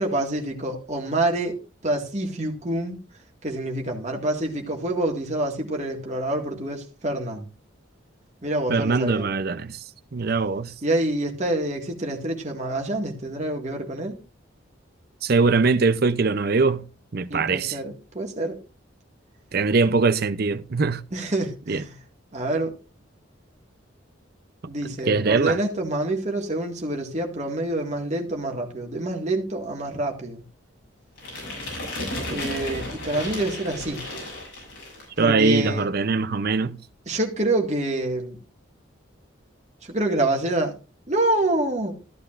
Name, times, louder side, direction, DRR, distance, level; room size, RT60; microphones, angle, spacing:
voice 1, 0.0-1.6 1.8-3.0 3.4-7.5 8.4-9.3 10.8-14.2 17.3-18.6 21.1-22.0 22.3-22.7 24.7-30.4 32.3-34.0 35.2-35.9 37.1-38.4 39.8-40.8 41.1-41.9, right 1 dB, 35° right, 1.9 m, -27 dB
voice 2, 8.7-9.8 10.1-10.7 15.2-16.9 17.1-17.8 19.5-21.0 21.7-21.8 25.1-25.6 35.2-36.8, right 4 dB, 50° right, 0.6 m, -22 dB
sound 1, 31.2-35.2, left 1 dB, 70° left, 7.0 m, -33 dB
14.0 x 11.5 x 2.5 m
head